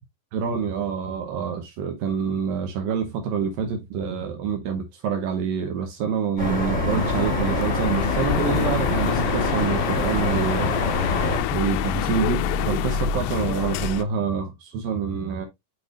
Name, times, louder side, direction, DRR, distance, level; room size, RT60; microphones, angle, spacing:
voice 1, 0.3-10.7 11.5-15.5, right 6 dB, 75° right, 2.2 m, -27 dB
sound 1, 6.4-11.4, left 2 dB, 15° left, 3.8 m, -25 dB
sound 2, 6.9-14.0, left 10 dB, 85° left, 2.7 m, -27 dB
6.8 x 6.0 x 2.5 m
omnidirectional pair, 5.0 m